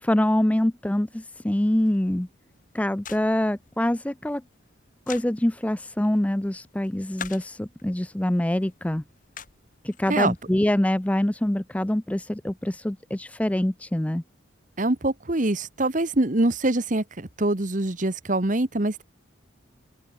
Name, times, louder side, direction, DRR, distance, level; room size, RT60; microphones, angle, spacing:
voice 1, 0.0-2.3 2.7-4.4 5.1-9.0 9.8-14.2, left 1 dB, 5° left, 0.4 m, -25 dB
sound 1, 1.6-10.6, left 7 dB, 45° left, 6.3 m, -47 dB
voice 2, 14.8-19.0, right 2 dB, 40° right, 1.3 m, -24 dB
open air
head